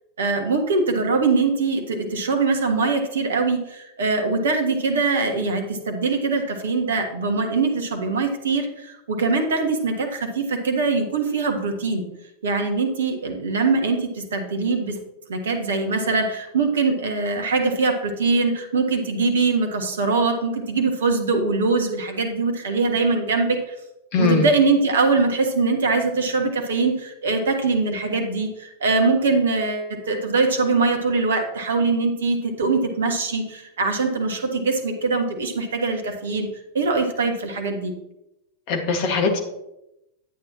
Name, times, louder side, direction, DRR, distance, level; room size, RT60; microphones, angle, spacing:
voice 1, 0.2-12.1 12.4-15.0 15.3-23.7 24.2-36.5 36.7-38.0, right 3 dB, 65° right, 5 dB, 1.5 m, -22 dB
voice 2, 24.1-24.5 38.7-39.4, left 4 dB, 45° left, 3 dB, 1.9 m, -21 dB
11.0 x 8.9 x 3.0 m, 0.88 s
figure-of-eight pair, 90°, 0 cm